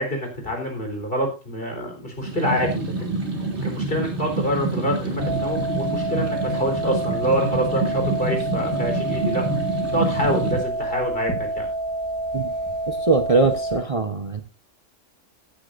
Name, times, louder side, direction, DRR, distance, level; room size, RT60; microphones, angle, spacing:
voice 1, 0.0-3.2 3.6-9.4 9.9-11.7, equal, 45° left, 3 dB, 4.3 m, -26 dB
sound 1, 2.2-10.5, right 2 dB, 60° right, 3.2 m, -27 dB
sound 2, 5.2-13.8, right 2 dB, 15° left, 6.4 m, -28 dB
voice 2, 12.9-14.4, right 3 dB, 30° right, 6 dB, 1.0 m, -21 dB
16.5 x 9.9 x 2.6 m, 0.30 s
omnidirectional pair, 1.3 m